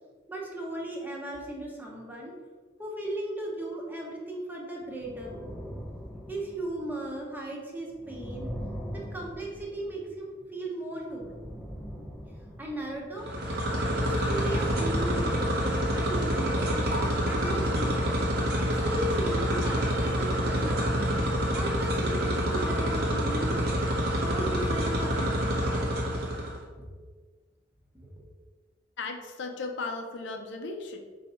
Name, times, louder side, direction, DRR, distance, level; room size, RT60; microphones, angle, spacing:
voice 1, 0.3-2.3 2.8-5.5 6.3-8.5 8.9-11.4 12.6-13.3 14.0-18.2 18.6-21.0 21.5-23.5 24.1-25.7 26.8-26.9 27.9-28.1, right 1 dB, 10° right, -2 dB, 0.8 m, -36 dB
sound 1, 4.8-7.2 7.9-10.6 11.0-13.5 13.8-16.7 17.3-21.8, equal, 5° left, 0.4 m, -42 dB
sound 2, 13.2-26.6, equal, 55° right, 0.9 m, -27 dB
voice 2, 29.0-31.0, left 3 dB, 65° left, 4 dB, 0.5 m, -36 dB
4.3 x 2.7 x 4.2 m, 1.5 s
head